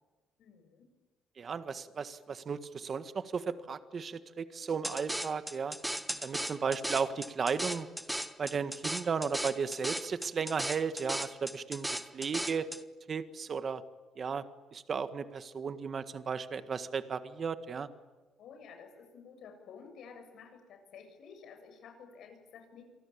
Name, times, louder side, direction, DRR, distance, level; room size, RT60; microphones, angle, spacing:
voice 1, 0.4-0.9 18.4-22.8, left 6 dB, 60° left, 6 dB, 7.2 m, -52 dB
voice 2, 1.4-5.8 6.2-7.9 8.4-11.9 12.1-12.7 13.1-13.8 14.2-14.5 14.7-17.9, right 6 dB, 35° right, 11 dB, 1.7 m, -35 dB
sound 1, 4.8-12.8, right 1 dB, 5° right, 1.3 m, -37 dB
29.0 x 23.5 x 8.7 m, 1.3 s
cardioid pair, 140°, 0 cm